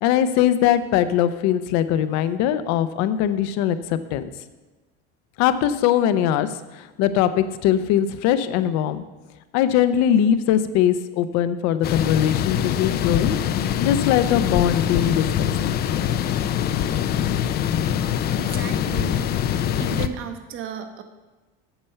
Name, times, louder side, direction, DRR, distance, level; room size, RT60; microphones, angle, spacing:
voice 1, 0.0-4.2 5.4-9.0 9.5-13.4 13.8-15.5, left 10 dB, 65° left, 12 dB, 0.7 m, -21 dB
sound 1, 11.8-20.1, left 10 dB, 35° left, 0.4 m, -23 dB
voice 2, 18.3-19.5 19.8-21.0, right 8 dB, 45° right, 7 dB, 1.1 m, -34 dB
8.8 x 6.8 x 5.7 m, 1.2 s
cardioid pair, 145°, 29 cm